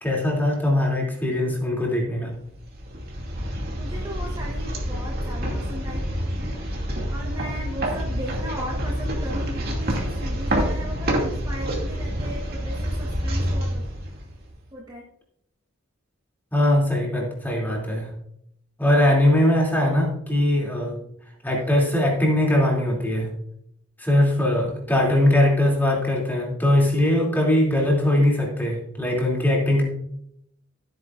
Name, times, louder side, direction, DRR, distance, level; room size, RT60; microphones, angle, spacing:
voice 1, 0.0-2.3 16.5-18.1 18.8-21.0 21.4-23.3 24.0-29.8, left 1 dB, 10° left, -2 dB, 2.7 m, -21 dB
sound 1, 2.5-14.6, equal, 50° right, 2.4 m, -27 dB
voice 2, 3.7-6.1 7.1-13.8 14.7-15.1 25.1-25.6, equal, 20° right, -2 dB, 1.2 m, -37 dB
15.0 x 8.9 x 2.5 m, 0.74 s
head